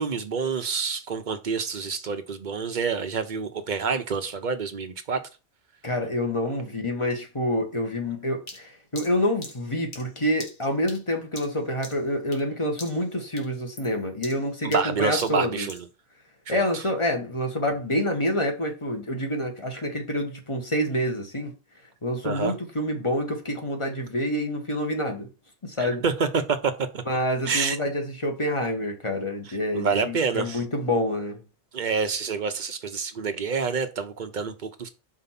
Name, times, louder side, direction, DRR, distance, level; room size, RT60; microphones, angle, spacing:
voice 1, 0.0-5.2 14.6-15.9 16.5-16.8 22.2-22.5 25.8-27.0 27.5-27.8 29.7-30.6 31.7-34.9, right 5 dB, 45° right, 0.9 m, -27 dB
voice 2, 5.8-15.7 16.5-21.5 22.0-25.3 25.6-26.0 27.1-31.4, left 1 dB, 25° left, 1.6 m, -27 dB
sound 1, 8.5-12.5 12.8-13.1 13.4-15.9, left 2 dB, 45° left, 1.8 m, -43 dB
5.5 x 4.6 x 5.8 m
omnidirectional pair, 1.1 m